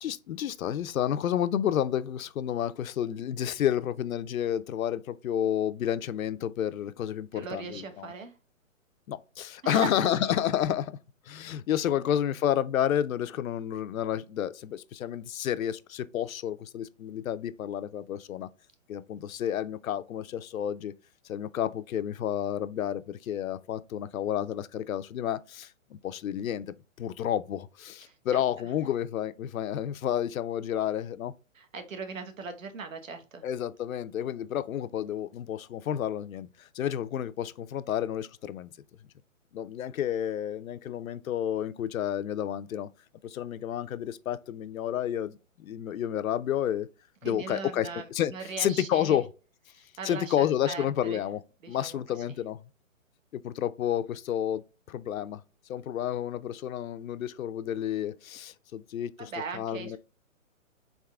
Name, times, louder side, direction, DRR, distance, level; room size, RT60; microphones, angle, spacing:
voice 1, 0.0-8.1 9.1-11.0 11.3-18.5 18.9-20.9 21.3-31.3 33.4-38.7 39.5-42.9 43.2-46.9 47.2-48.3 48.6-49.3 50.0-51.4 51.7-52.6 53.3-54.6 54.9-55.4 55.7-59.1 59.5-60.0, left 10 dB, 85° left, 0.5 m, -30 dB
voice 2, 7.3-8.3 9.6-10.3 12.0-12.1 28.0-28.4 31.5-33.4 47.2-49.2 49.7-51.2 51.6-52.0 59.2-60.0, right 5 dB, 75° right, 1.0 m, -39 dB
4.0 x 3.6 x 2.3 m
hypercardioid pair, 170°, 40 cm